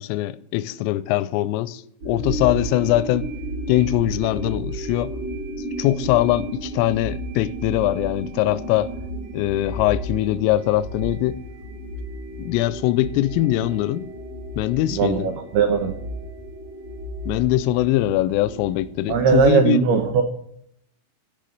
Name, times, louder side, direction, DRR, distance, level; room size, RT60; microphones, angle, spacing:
voice 1, 0.0-3.3 3.7-5.1 5.8-8.9 9.3-11.4 12.4-14.1 14.6-15.3 17.3-19.8, left 15 dB, 85° left, 3.1 m, -22 dB
Celestial Journey, 2.0-19.5, right 1 dB, 40° right, 4.5 m, -33 dB
voice 2, 14.9-15.9 19.1-20.2, right 6 dB, 80° right, 2.3 m, -19 dB
14.0 x 5.6 x 7.9 m
omnidirectional pair, 6.0 m